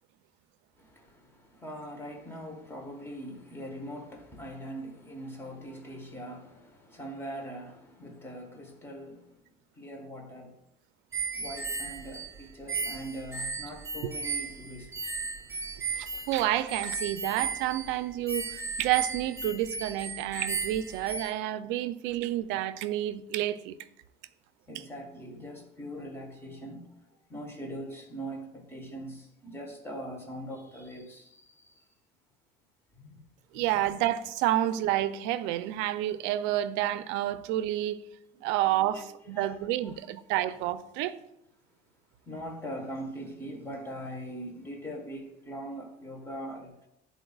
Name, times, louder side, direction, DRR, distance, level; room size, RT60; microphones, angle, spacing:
voice 1, 0.7-9.4 9.7-10.6 11.3-15.1 24.7-31.9 32.9-33.2 33.5-33.8 38.7-40.0 42.2-46.9, equal, 10° left, 1.1 m, -42 dB
sound 1, 11.1-21.3, right 4 dB, 15° right, 0.9 m, -35 dB
voice 2, 16.0-23.8 33.5-38.0 38.4-41.2, right 13 dB, 80° right, 0.4 m, -29 dB
10.0 x 4.1 x 2.3 m
cardioid pair, 130°, 19 cm